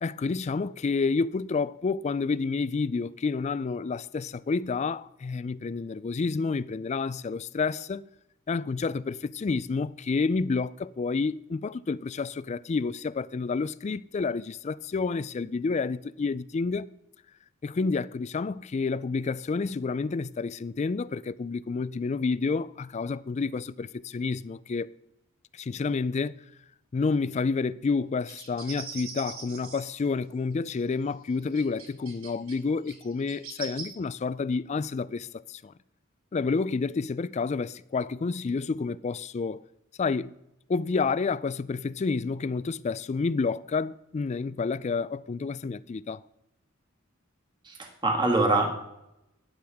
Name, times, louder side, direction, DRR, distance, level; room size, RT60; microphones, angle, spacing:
voice 1, 0.0-8.0 8.5-16.9 17.6-24.9 25.5-26.3 26.9-35.7 36.3-39.6 40.0-40.3 40.7-46.2, left 4 dB, 35° left, 0.3 m, -29 dB
sound 1, 28.3-30.0 30.8-30.9 31.5-32.5 32.8-33.8, right 6 dB, 90° right, 2.4 m, -41 dB
voice 2, 47.7-48.7, right 2 dB, 20° right, 1.8 m, -24 dB
12.0 x 10.5 x 3.5 m
head